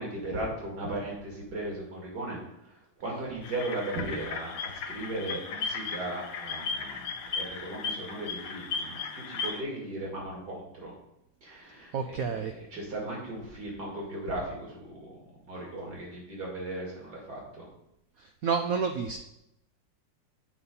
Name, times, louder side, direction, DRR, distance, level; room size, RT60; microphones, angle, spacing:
voice 1, 0.0-10.9 11.4-15.2 15.4-17.7, right 1 dB, 60° right, -3 dB, 2.7 m, -37 dB
sound 1, 3.4-9.6, left 5 dB, 60° left, 0.9 m, -36 dB
voice 2, 11.9-12.5 18.2-19.2, right 6 dB, 85° right, 6 dB, 0.7 m, -30 dB
8.6 x 4.1 x 5.4 m, 0.83 s
omnidirectional pair, 2.0 m